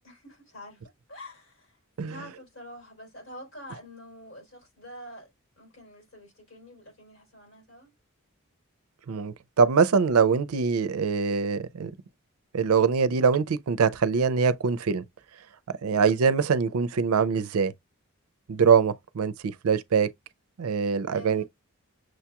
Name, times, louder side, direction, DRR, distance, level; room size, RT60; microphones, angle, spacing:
voice 1, 0.0-0.8 1.1-1.8 2.0-5.3 5.6-7.9 15.9-16.2 21.1-21.4, left 1 dB, 70° left, 3.4 m, -46 dB
voice 2, 9.1-11.9 12.5-15.0 15.8-17.7 18.5-20.1 20.6-21.4, right 6 dB, 85° right, 0.5 m, -23 dB
6.3 x 2.9 x 2.3 m
head